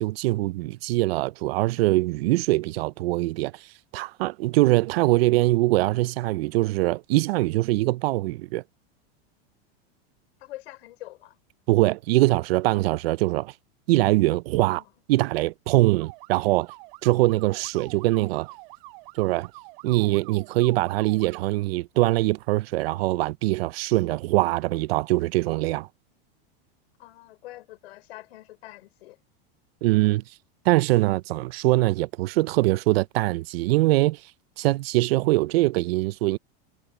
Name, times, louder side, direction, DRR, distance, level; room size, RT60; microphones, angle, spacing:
voice 1, 0.0-3.7 3.9-8.6 11.7-13.5 13.9-14.8 15.1-16.7 17.0-18.5 19.1-19.5 19.8-25.9 29.8-30.2 30.7-34.2 34.6-36.4, right 19 dB, 75° right, 0.5 m, -23 dB
voice 2, 10.4-11.4 14.6-14.9 27.0-29.2, left 16 dB, 80° left, 3.8 m, -44 dB
sound 1, 16.0-21.4, right 29 dB, 55° right, 8.0 m, -46 dB
supercardioid pair, 160°, 30 cm